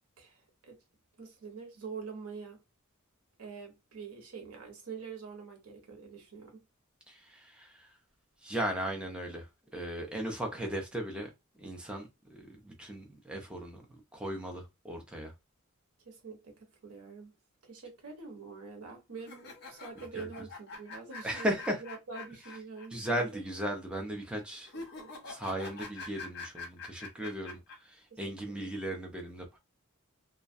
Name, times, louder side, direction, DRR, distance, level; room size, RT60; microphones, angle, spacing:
voice 1, 1.2-2.6 3.4-6.6 16.0-17.3 17.6-23.4 24.7-25.1 27.2-27.3 28.1-28.7, right 5 dB, 90° right, 0.9 m, -45 dB
voice 2, 7.1-7.9 8.4-9.5 9.7-11.3 11.6-15.3 20.1-20.3 21.2-21.8 22.9-24.7 25.3-29.6, right 1 dB, 5° right, 0.5 m, -37 dB
sound 1, 19.2-22.9 23.1-23.2 24.7-27.8, left 3 dB, 50° left, 0.8 m, -44 dB
2.3 x 2.1 x 2.5 m
head